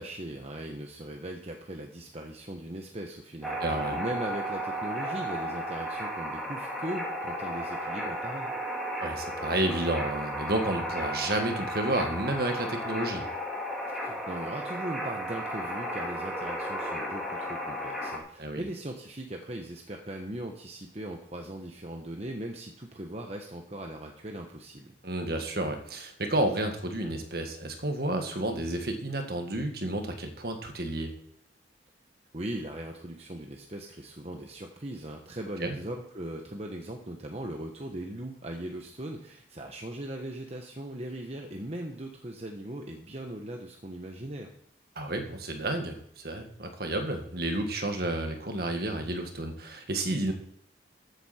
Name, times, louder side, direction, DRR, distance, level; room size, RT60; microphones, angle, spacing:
voice 1, 0.0-8.5 14.0-24.9 32.3-44.5, right 1 dB, 35° right, 2 dB, 1.1 m, -39 dB
sound 1, 3.4-18.2, equal, ahead, 2.2 m, -34 dB
voice 2, 3.6-4.0 9.0-13.3 18.4-18.6 25.0-31.1 35.6-35.8 45.0-50.3, right 1 dB, 55° right, 4 dB, 1.8 m, -31 dB
14.0 x 8.4 x 4.4 m, 0.70 s
head